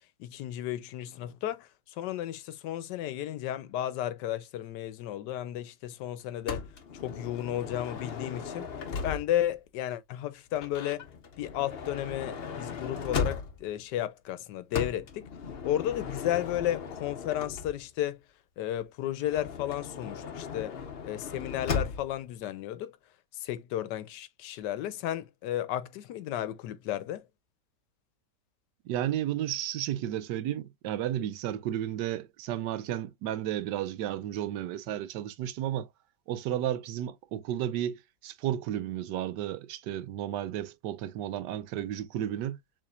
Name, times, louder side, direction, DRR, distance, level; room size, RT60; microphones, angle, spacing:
voice 1, 0.2-6.7 7.0-11.1 11.4-15.3 15.6-18.2 18.6-20.8 21.0-23.0 23.3-27.3, left 12 dB, 85° left, 1.2 m, -33 dB
Motor vehicle (road) / Sliding door, 6.5-9.6 10.5-13.8 14.7-18.0 19.2-22.2, left 5 dB, 45° left, 0.8 m, -37 dB
voice 2, 28.8-35.9 36.3-42.6, right 11 dB, 90° right, 1.2 m, -33 dB
6.8 x 3.1 x 2.4 m
omnidirectional pair, 1.8 m